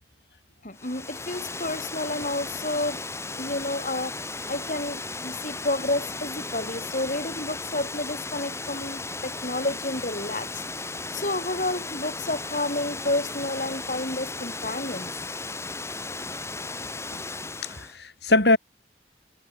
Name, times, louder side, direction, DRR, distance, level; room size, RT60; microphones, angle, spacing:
voice 1, 0.6-3.0 3.3-10.6 11.1-15.1, left 2 dB, 45° left, 3.8 m, -30 dB
Water, 0.7-18.0, left 3 dB, 15° left, 2.8 m, -35 dB
voice 2, 17.6-18.6, left 2 dB, 70° left, 7.2 m, -22 dB
head